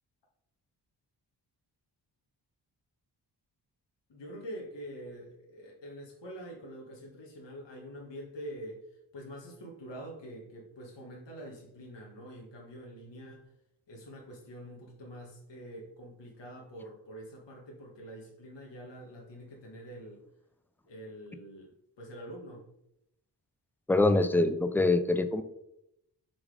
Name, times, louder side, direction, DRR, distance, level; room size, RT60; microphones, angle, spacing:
voice 1, 4.1-13.5 13.9-20.2 20.8-22.7, equal, 90° left, -2 dB, 1.7 m, -46 dB
voice 2, 23.9-25.4, left 2 dB, 5° left, 9 dB, 0.4 m, -24 dB
6.1 x 4.1 x 4.9 m, 0.81 s
wide cardioid pair, 145°, 42 cm